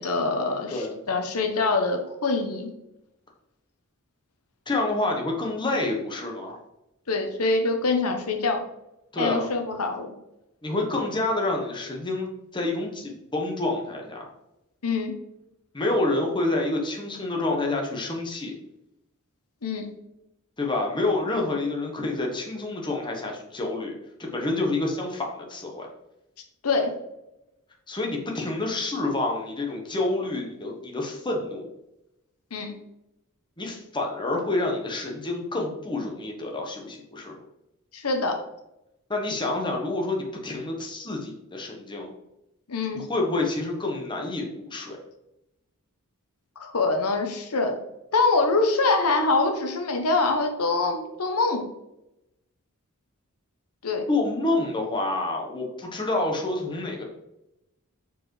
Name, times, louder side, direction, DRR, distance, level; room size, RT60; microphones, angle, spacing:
voice 1, 0.0-2.7 7.1-8.6 9.2-10.1 14.8-15.1 19.6-19.9 26.6-27.0 32.5-32.7 37.9-38.4 42.7-43.1 46.6-47.8 48.1-51.6 53.8-54.0, left 3 dB, 90° left, 4 dB, 1.0 m, -24 dB
voice 2, 4.7-6.6 9.1-9.5 10.6-14.3 15.7-18.5 20.6-23.9 24.3-25.9 27.9-31.6 33.6-37.4 39.1-42.1 42.9-45.0 54.1-57.0, left 2 dB, 20° left, 0 dB, 1.1 m, -28 dB
6.8 x 4.7 x 3.2 m, 0.89 s
head